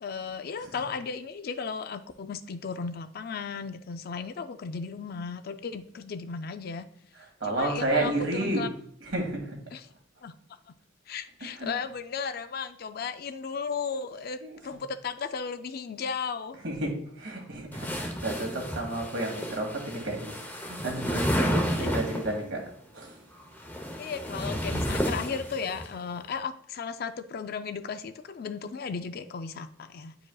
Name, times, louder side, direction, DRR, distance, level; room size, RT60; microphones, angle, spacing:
voice 1, 0.0-6.9 7.5-8.7 9.7-9.8 10.2-10.3 11.1-16.6 21.8-21.9 24.0-30.2, left 5 dB, 50° left, 10 dB, 0.4 m, -35 dB
voice 2, 7.1-8.7 9.0-9.6 11.4-11.9 14.4-14.8 16.6-22.6 22.9-23.2, right 2 dB, 65° right, 1 dB, 1.9 m, -32 dB
sound 1, 17.7-22.4 23.4-25.9, equal, 10° left, 0.8 m, -31 dB
10.0 x 4.8 x 2.3 m, 0.69 s
head